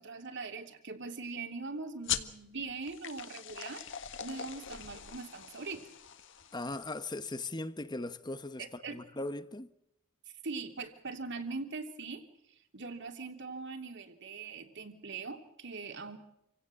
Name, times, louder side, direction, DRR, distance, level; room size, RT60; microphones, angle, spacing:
voice 1, 0.0-3.9 4.2-5.9 8.6-9.0 10.4-16.2, right 4 dB, 55° right, 3.0 m, -41 dB
sound 1, 2.0-7.1, left 10 dB, 55° left, 1.6 m, -41 dB
voice 2, 6.5-8.6 8.9-9.7, left 2 dB, 20° left, 1.0 m, -38 dB
28.0 x 17.0 x 7.7 m
head